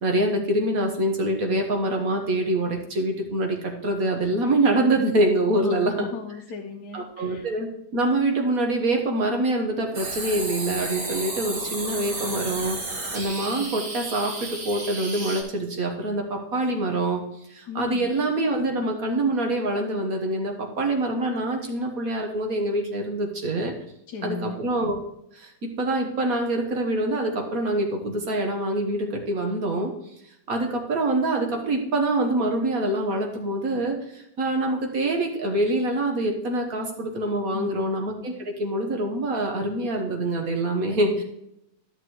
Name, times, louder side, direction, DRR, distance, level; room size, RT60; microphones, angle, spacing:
voice 1, 0.0-6.1 6.9-7.7 7.9-12.8 13.1-17.2 17.5-23.7 24.2-25.0 25.3-29.9 30.5-41.2, right 1 dB, 55° right, 2 dB, 1.6 m, -25 dB
voice 2, 5.6-7.5 17.7-18.1 24.1-24.6 37.5-37.7 40.9-41.2, left 5 dB, 70° left, 2 dB, 1.3 m, -36 dB
sound 1, 9.9-15.4, right 2 dB, 80° right, 2.9 m, -32 dB
13.0 x 6.7 x 3.1 m, 0.80 s
omnidirectional pair, 1.9 m